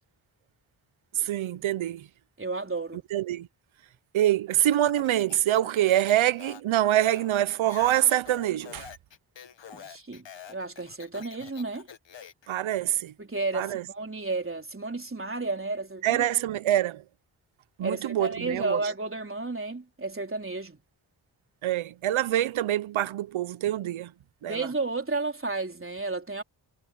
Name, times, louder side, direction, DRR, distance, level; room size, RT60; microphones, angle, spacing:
voice 1, 1.1-2.1 3.1-3.5 4.1-8.9 12.5-13.1 13.5-13.8 16.0-17.0 17.8-18.8 21.6-24.1 24.4-24.7, right 13 dB, 90° right, 0.8 m, -25 dB
voice 2, 2.4-3.0 9.7-11.9 13.2-16.3 17.8-20.8 24.4-26.4, right 3 dB, 25° right, 4.1 m, -32 dB
Speech, 4.7-12.5, left 8 dB, 65° left, 1.8 m, -47 dB
cardioid pair, 55°, 47 cm